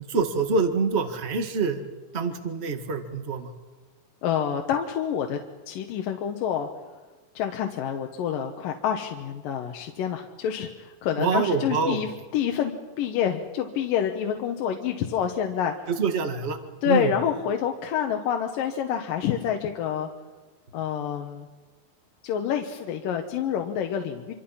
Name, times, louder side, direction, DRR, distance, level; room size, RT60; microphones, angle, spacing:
voice 1, 0.1-1.8 2.1-3.5 11.2-12.0 15.9-16.6 16.8-17.1, right 4 dB, 35° right, 7 dB, 1.0 m, -25 dB
voice 2, 4.2-5.4 5.7-6.7 7.4-15.9 16.8-20.1 20.7-21.5 22.2-24.3, left 9 dB, 70° left, 3 dB, 2.8 m, -27 dB
26.5 x 25.5 x 5.7 m, 1.3 s
omnidirectional pair, 4.2 m